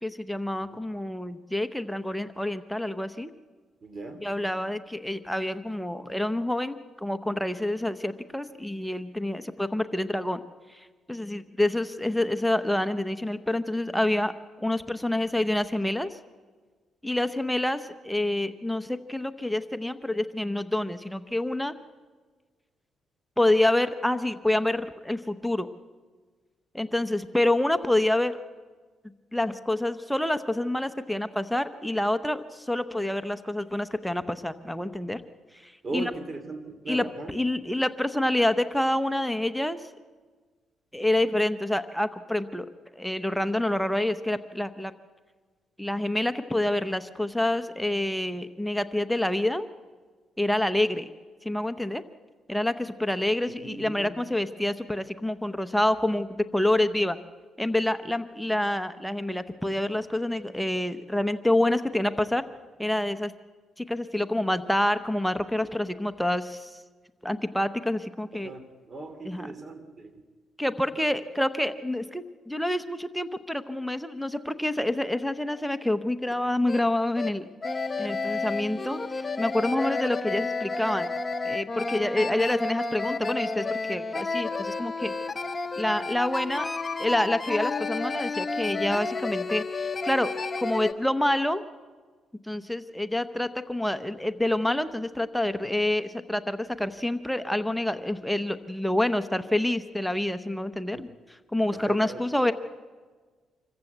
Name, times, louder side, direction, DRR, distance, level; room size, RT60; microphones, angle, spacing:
voice 1, 0.0-3.3 4.2-10.4 10.7-14.3 14.6-16.1 17.0-21.7 23.4-25.7 26.7-28.3 29.3-35.2 35.6-36.1 36.9-39.8 40.9-42.7 42.9-44.9 45.8-49.6 50.4-51.1 51.4-52.0 52.5-56.3 56.5-57.2 57.6-62.4 62.8-63.3 63.8-66.8 67.2-68.5 69.2-69.5 70.6-77.5 78.0-79.0 79.4-81.1 81.4-85.1 85.8-86.7 87.0-90.3 90.6-91.6 92.4-102.5, left 1 dB, ahead, 10 dB, 0.9 m, -27 dB
voice 2, 3.8-4.2 35.8-37.3 53.6-54.1 68.4-70.1 100.9-101.1 101.7-102.2, right 3 dB, 35° right, 9 dB, 2.8 m, -38 dB
sound 1, 76.3-76.4 76.7-76.8 77.2-77.3 77.6-90.9, left 3 dB, 25° left, 1.0 m, -31 dB
26.0 x 15.0 x 8.0 m, 1.4 s
cardioid pair, 90°, 0 cm